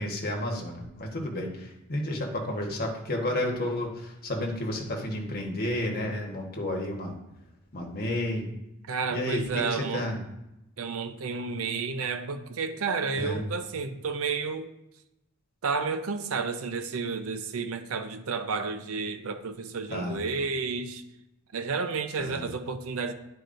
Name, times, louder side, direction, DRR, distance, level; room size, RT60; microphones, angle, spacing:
voice 1, 0.0-7.1 7.7-8.5 9.1-10.2 13.2-13.4 19.9-20.2 22.2-22.4, left 1 dB, 45° left, 1.2 m, -31 dB
voice 2, 8.9-10.1 10.8-14.7 15.6-21.0 21.5-23.1, right 4 dB, 70° right, 0.5 m, -31 dB
10.0 x 4.6 x 2.6 m
head